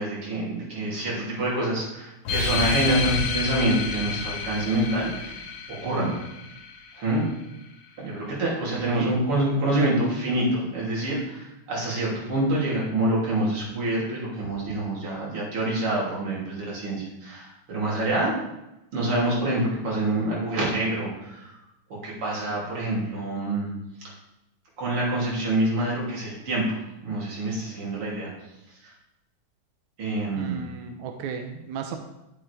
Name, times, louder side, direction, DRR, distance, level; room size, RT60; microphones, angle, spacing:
voice 1, 0.0-5.4 5.7-6.1 6.9-7.2 8.0-18.3 18.9-21.6 21.9-23.7 24.0-24.1 24.8-26.8 27.0-28.3 28.7-28.9 30.0-30.6, right 1 dB, 50° right, -5 dB, 3.8 m, -26 dB
sound 1, 2.3-7.3, left 4 dB, 65° left, 2.0 m, -30 dB
voice 2, 8.8-9.2 30.4-32.0, right 6 dB, 75° right, 5 dB, 2.1 m, -34 dB
12.5 x 7.5 x 3.4 m, 0.91 s
omnidirectional pair, 3.4 m